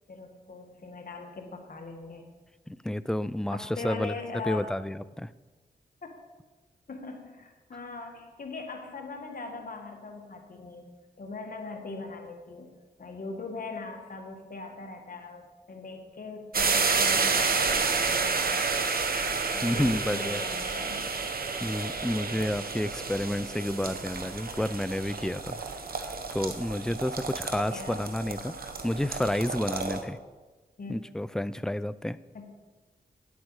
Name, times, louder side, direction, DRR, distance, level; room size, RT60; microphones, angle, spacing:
voice 1, 0.1-2.2 3.5-4.7 6.0-6.2 6.9-10.8 11.2-12.7 13.0-18.6 19.5-21.1 27.7-28.0 30.8-31.0 32.3-32.5, left 3 dB, 60° left, 3 dB, 1.7 m, -40 dB
voice 2, 2.7-4.1 4.4-5.3 19.6-20.4 21.6-25.6 26.0-30.2 30.9-32.2, left 1 dB, 5° left, 16 dB, 0.4 m, -30 dB
sound 1, 16.5-30.0, right 4 dB, 65° right, 1.1 m, -30 dB
10.5 x 8.1 x 4.8 m, 1.3 s
cardioid pair, 65°, 17 cm